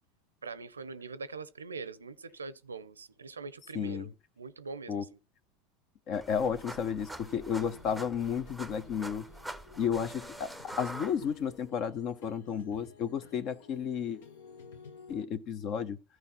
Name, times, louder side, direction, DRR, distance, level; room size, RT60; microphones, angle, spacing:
voice 1, 0.4-5.1, right 4 dB, 85° right, 0.6 m, -43 dB
voice 2, 3.7-4.1 4.9-5.1 6.1-9.2 9.8-10.5 10.8-14.2 15.1-16.0, left 7 dB, 50° left, 1.1 m, -32 dB
sound 1, 6.1-11.7, right 1 dB, ahead, 0.9 m, -45 dB
sound 2, 6.8-15.2, left 5 dB, 70° left, 1.2 m, -54 dB
14.0 x 4.7 x 4.3 m
figure-of-eight pair, 80°, 0 cm